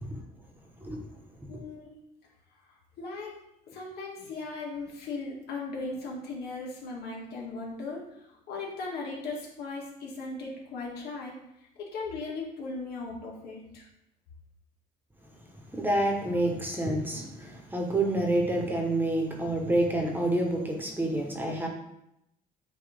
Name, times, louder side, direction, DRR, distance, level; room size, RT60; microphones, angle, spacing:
voice 1, 1.5-1.9 3.0-3.3 3.7-11.3 11.8-13.9, left 3 dB, 70° left, -3 dB, 2.0 m, -38 dB
voice 2, 15.6-21.7, right 1 dB, 10° right, 1 dB, 1.3 m, -28 dB
8.9 x 3.1 x 3.6 m, 0.82 s
cardioid pair, 110°, 17 cm